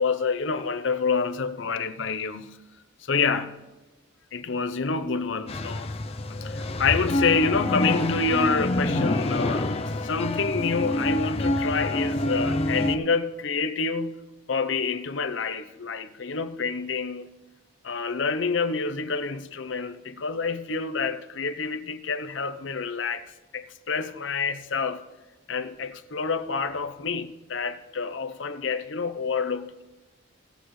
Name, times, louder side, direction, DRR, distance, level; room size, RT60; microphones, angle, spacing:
voice 1, 0.0-2.5 3.0-3.6 4.3-5.9 6.4-14.2 14.5-17.3 17.8-23.2 23.5-25.0 25.5-29.8, left 4 dB, 65° left, 0.7 m, -28 dB
sound 1, 5.5-13.0, left 1 dB, 30° left, 0.5 m, -27 dB
18.5 x 8.2 x 3.2 m
head